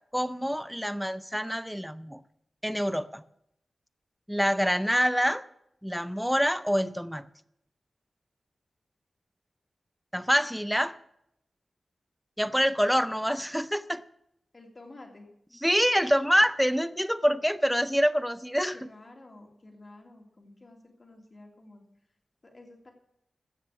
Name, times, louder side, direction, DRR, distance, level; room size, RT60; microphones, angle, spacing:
voice 1, 0.1-2.2 2.6-3.2 4.3-5.5 5.8-7.2 10.1-11.0 12.4-14.0 15.6-18.8, equal, ahead, 14 dB, 0.5 m, -26 dB
voice 2, 14.5-15.3 18.7-21.8 22.4-22.9, left 2 dB, 35° left, 2 dB, 2.9 m, -51 dB
15.0 x 6.6 x 8.2 m, 0.77 s
wide cardioid pair, 115°, 0 cm